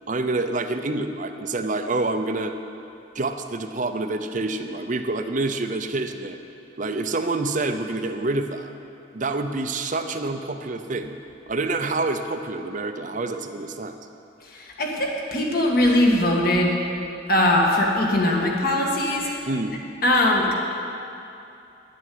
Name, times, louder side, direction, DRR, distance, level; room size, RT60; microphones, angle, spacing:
voice 1, 0.1-2.5 3.1-6.4 6.8-8.7 9.1-11.2 11.5-14.0 19.5-19.8, right 2 dB, 40° right, 7 dB, 0.6 m, -27 dB
voice 2, 14.4-16.7 17.3-19.3 20.0-20.5, left 1 dB, 50° left, -1 dB, 1.7 m, -21 dB
10.5 x 7.7 x 8.4 m, 2.7 s
head